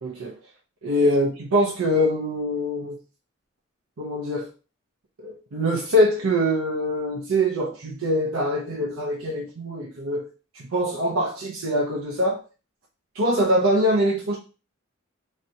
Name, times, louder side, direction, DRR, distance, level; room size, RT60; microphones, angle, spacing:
voice 1, 0.0-0.3 0.8-3.0 4.0-4.5 5.2-10.3 10.5-12.4 13.2-14.4, equal, 85° right, -1 dB, 0.6 m, -23 dB
3.3 x 2.7 x 2.7 m, 0.33 s
head